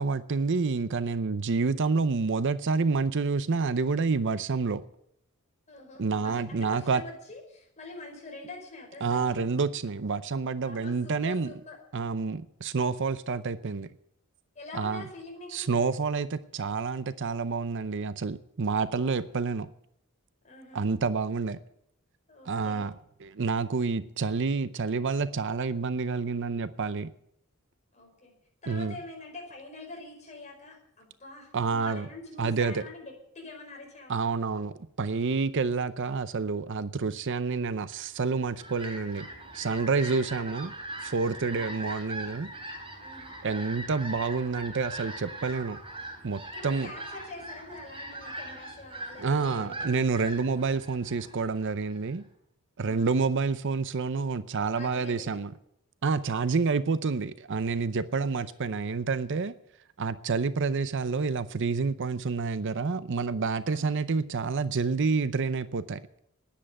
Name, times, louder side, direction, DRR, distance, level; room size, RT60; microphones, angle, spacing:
voice 1, 0.0-4.8 6.0-7.0 9.0-11.5 11.9-13.9 14.7-15.0 15.5-19.7 20.7-21.6 22.5-22.9 23.2-27.1 28.7-28.9 31.5-32.1 32.4-32.8 34.1-39.3 39.5-40.7 41.0-42.5 43.4-45.8 46.2-46.9 49.2-52.2 52.8-55.5 56.0-59.5 60.0-66.0, right 4 dB, 60° right, 0.6 m, -28 dB
voice 2, 5.7-9.5 10.6-11.8 14.5-15.7 20.4-20.8 22.3-22.8 27.9-28.3 28.6-33.0 33.3-34.2 39.9-40.2 41.5-41.8 43.0-43.3 46.5-50.1 52.8-53.1 54.8-55.4 58.1-58.4 63.7-63.9, left 2 dB, 35° left, 5.0 m, -45 dB
Fowl, 38.3-52.1, right 1 dB, 25° right, 3.6 m, -41 dB
10.0 x 10.0 x 9.0 m
head